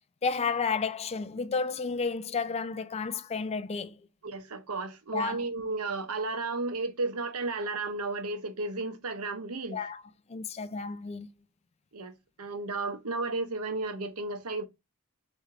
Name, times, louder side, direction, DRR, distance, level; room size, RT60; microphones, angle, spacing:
voice 1, 0.2-4.0 5.1-5.4 9.7-10.0 10.3-11.3, left 5 dB, 30° left, 0.4 m, -31 dB
voice 2, 4.2-9.8 11.9-14.6, right 3 dB, 80° right, 0.8 m, -33 dB
4.4 x 3.2 x 3.6 m
head